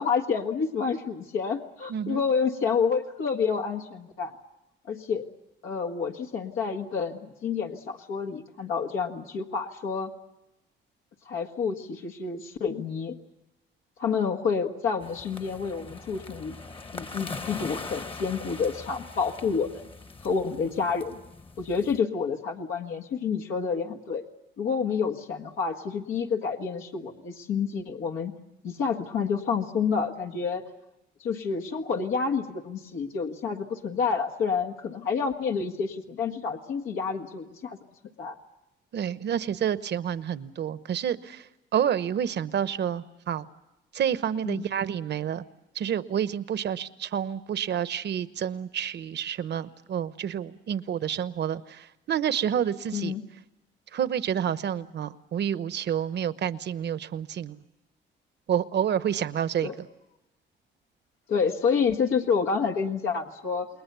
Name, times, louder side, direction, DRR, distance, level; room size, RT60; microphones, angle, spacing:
voice 1, 0.0-4.3 4.9-5.2 5.6-10.1 11.3-13.2 14.0-16.5 16.9-19.9 20.2-21.2 21.6-24.2 24.6-28.3 28.6-30.6 31.2-37.8 38.2-38.4 44.4-44.6 52.9-53.3 59.6-59.8 61.3-63.7, left 5 dB, 85° left, 2 dB, 1.8 m, -29 dB
voice 2, 1.9-2.2 38.9-43.5 43.9-45.4 45.7-53.1 53.9-57.6 58.5-59.9, right 9 dB, 60° right, 14 dB, 1.0 m, -29 dB
sound 1, 15.0-22.0, left 3 dB, 25° left, 1.2 m, -41 dB
29.0 x 21.0 x 6.9 m, 0.98 s
cardioid pair, 90°, 20 cm